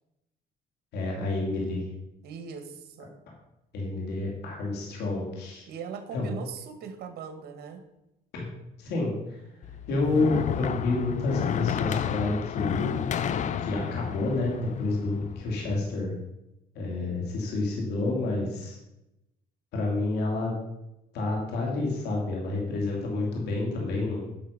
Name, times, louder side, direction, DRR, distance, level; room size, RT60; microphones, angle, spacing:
voice 1, 0.9-1.8 3.7-5.7 6.1-6.3 8.3-8.5 8.8-9.4 9.9-13.0 13.6-16.1 16.7-18.8 19.7-20.5 21.1-24.2, left 2 dB, 80° left, -1 dB, 2.9 m, -29 dB
voice 2, 2.2-3.1 5.7-7.8 18.2-18.5, right 6 dB, 70° right, 7 dB, 1.6 m, -40 dB
sound 1, 9.6-15.8, left 8 dB, 45° left, 0.6 m, -31 dB
10.5 x 6.1 x 5.2 m, 0.90 s
cardioid pair, 110°, 17 cm